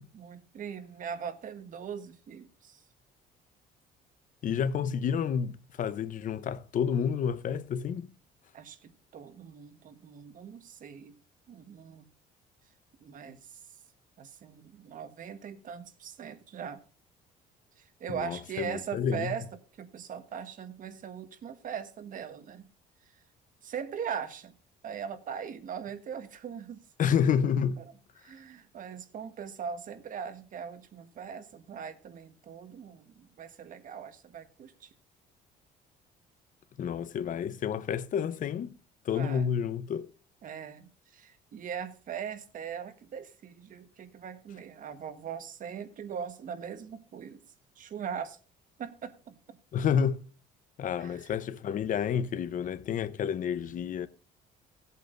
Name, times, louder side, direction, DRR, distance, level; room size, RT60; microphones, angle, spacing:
voice 1, 0.1-2.8 8.5-11.1 11.5-12.1 13.0-13.6 14.2-16.8 17.8-19.4 19.8-22.7 23.6-24.5 24.8-26.8 27.8-27.9 28.2-34.9 39.1-39.5 40.4-47.4 47.7-48.4 48.8-49.6 51.0-51.3, right 7 dB, 50° right, 1.5 m, -40 dB
voice 2, 4.4-8.1 18.1-19.3 27.0-27.8 36.8-38.7 39.0-40.1 49.7-50.2 50.8-54.1, left 7 dB, 50° left, 0.9 m, -29 dB
17.0 x 8.2 x 2.6 m
cardioid pair, 110°, 17 cm